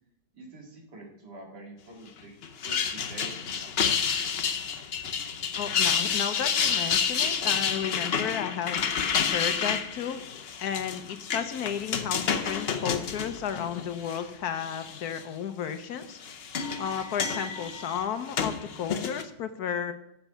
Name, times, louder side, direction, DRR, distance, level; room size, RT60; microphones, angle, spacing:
voice 1, 0.3-2.4 2.6-3.7, right 2 dB, 70° right, 0 dB, 2.7 m, -46 dB
sound 1, 2.4-14.2 14.6-15.2 16.0-19.2, left 6 dB, 55° left, 0.7 m, -29 dB
voice 2, 5.6-8.8 9.3-10.2 10.6-16.2 16.8-19.9, left 8 dB, 70° left, 10 dB, 1.1 m, -33 dB
7.8 x 7.1 x 5.6 m, 0.84 s
omnidirectional pair, 1.9 m